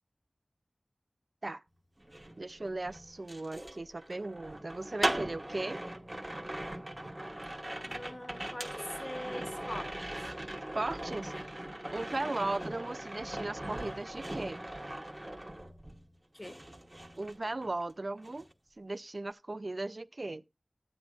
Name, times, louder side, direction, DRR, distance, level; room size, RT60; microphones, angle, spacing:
sound 1, 2.0-16.1 16.4-17.9 18.2-18.5, right 1 dB, 25° right, 1.1 m, -40 dB
voice 1, 2.4-5.8 10.7-11.6 11.9-14.6 17.2-18.5 18.8-20.4, right 2 dB, 55° right, 0.4 m, -37 dB
voice 2, 7.7-10.3 16.3-16.6, left 1 dB, 30° left, 0.7 m, -43 dB
13.0 x 9.7 x 2.5 m
wide cardioid pair, 45°, 0 cm